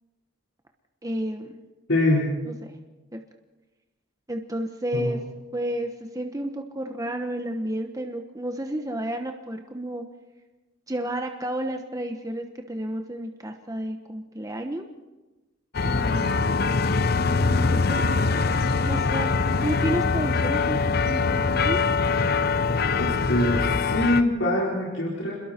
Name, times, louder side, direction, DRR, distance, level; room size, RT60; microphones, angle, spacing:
voice 1, 1.0-1.6 2.5-2.7 3.1-3.2 4.3-5.2 5.5-10.0 10.9-14.9 17.3-18.4 18.8-20.8 21.0-21.8, right 1 dB, 15° right, 4 dB, 1.1 m, -31 dB
voice 2, 1.9-2.3 4.9-5.1 15.8-16.7 23.0-25.4, left 1 dB, 80° left, -5 dB, 4.7 m, -25 dB
sound 1, 15.7-24.2, left 4 dB, 50° left, 0.8 m, -23 dB
29.5 x 21.5 x 4.5 m, 1.1 s
head